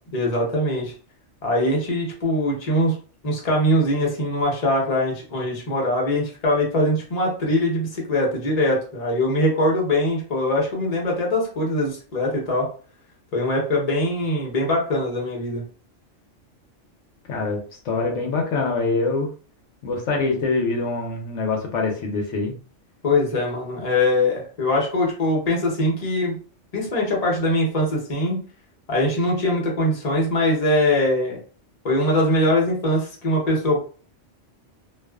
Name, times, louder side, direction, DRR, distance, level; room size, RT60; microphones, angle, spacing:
voice 1, 0.1-0.9 1.4-3.0 3.2-12.7 13.3-15.6 23.0-26.3 26.7-28.4 28.9-31.4 31.8-33.9, left 1 dB, 35° left, -2 dB, 0.8 m, -22 dB
voice 2, 17.3-19.3 19.8-22.5, left 3 dB, 80° left, 2 dB, 0.9 m, -24 dB
2.4 x 2.3 x 2.3 m, 0.39 s
omnidirectional pair, 1.3 m